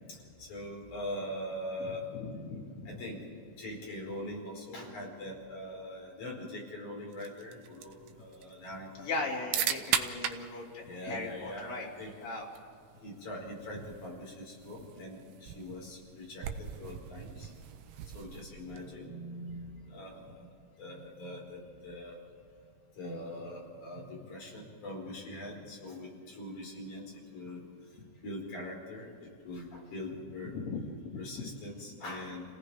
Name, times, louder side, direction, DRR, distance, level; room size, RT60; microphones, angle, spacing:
voice 1, 0.4-2.1 2.9-9.2 9.7-9.8 10.8-12.1 13.0-17.5 18.1-20.5 20.8-22.2 23.0-27.0 27.3-27.6 28.2-30.5 31.1-32.4, left 1 dB, 65° left, -2 dB, 6.2 m, -42 dB
voice 2, 2.1-2.6 2.9-3.0 9.0-11.9 12.2-12.4 30.5-31.2, left 3 dB, 85° left, -3 dB, 4.7 m, -38 dB
sound 1, 7.1-19.1, right 9 dB, 80° right, 2.4 m, -40 dB
30.0 x 18.0 x 5.0 m, 2.4 s
omnidirectional pair, 3.8 m